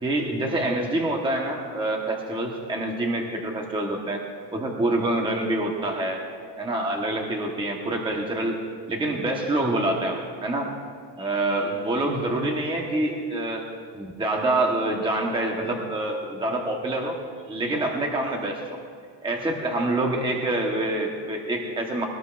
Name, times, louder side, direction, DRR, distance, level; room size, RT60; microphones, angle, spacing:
voice 1, 0.0-4.2 4.5-6.2 6.6-10.8 11.2-13.7 13.9-17.2 17.5-18.8 19.2-22.1, right 1 dB, 10° right, 0 dB, 1.1 m, -26 dB
21.5 x 19.0 x 2.5 m, 2.1 s
cardioid pair, 180°, 42 cm